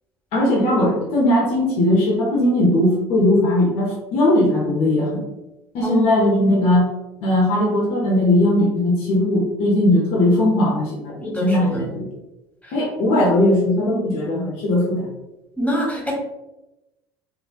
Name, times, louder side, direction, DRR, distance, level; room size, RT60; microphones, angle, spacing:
voice 1, 0.3-5.2 5.7-6.9 7.2-12.1 12.7-15.1, left 1 dB, 60° left, -4 dB, 0.8 m, -18 dB
voice 2, 5.8-6.2 11.2-11.8 15.6-16.1, left 1 dB, 10° left, -2 dB, 1.1 m, -25 dB
3.2 x 2.4 x 2.2 m, 0.97 s
figure-of-eight pair, 60°, 12 cm